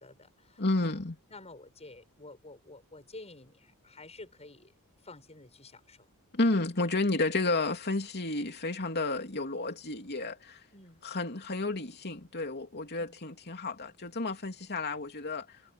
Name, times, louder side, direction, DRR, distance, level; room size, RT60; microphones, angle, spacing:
voice 1, 0.0-1.0 1.3-4.7 5.0-6.1 10.7-11.0 13.0-13.2, left 2 dB, 30° left, 7.0 m, -50 dB
voice 2, 0.6-1.2 6.3-10.6 11.0-15.5, left 2 dB, 50° left, 3.0 m, -31 dB
head